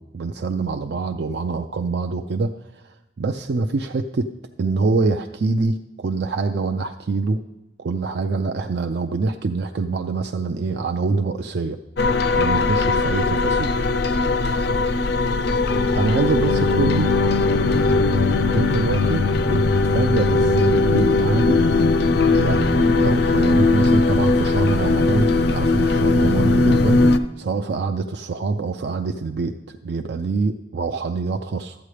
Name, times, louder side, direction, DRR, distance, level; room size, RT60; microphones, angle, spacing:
voice 1, 0.0-2.5 3.2-4.3 4.6-7.4 7.8-11.8 12.4-13.7 15.9-17.1 18.5-19.2 19.5-21.8 22.3-27.0 27.4-31.8, right 3 dB, 60° right, 6 dB, 0.4 m, -25 dB
sound 1, 12.0-27.2, left 3 dB, 60° left, 0.5 m, -19 dB
12.5 x 8.3 x 3.3 m, 1.0 s
head